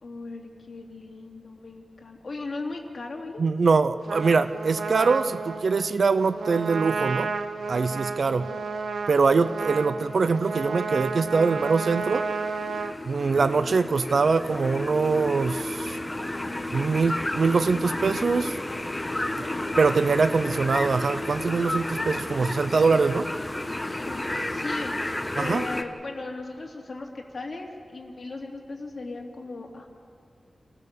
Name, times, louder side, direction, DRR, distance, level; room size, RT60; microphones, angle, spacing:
voice 1, 0.0-3.4 8.2-8.6 13.6-13.8 19.0-19.8 24.0-24.9 25.4-29.9, left 3 dB, 50° left, 0 dB, 2.7 m, -38 dB
voice 2, 3.4-7.3 7.7-8.5 9.1-12.3 13.1-16.0 16.7-18.6 19.8-23.3 25.4-25.6, right 4 dB, 65° right, 11 dB, 0.5 m, -23 dB
Trumpet, 4.1-12.9, right 4 dB, 85° right, 1.0 m, -32 dB
sound 1, 10.8-25.8, left 1 dB, 15° left, 1.1 m, -32 dB
28.5 x 15.0 x 6.8 m, 2.2 s
wide cardioid pair, 125°, 0 cm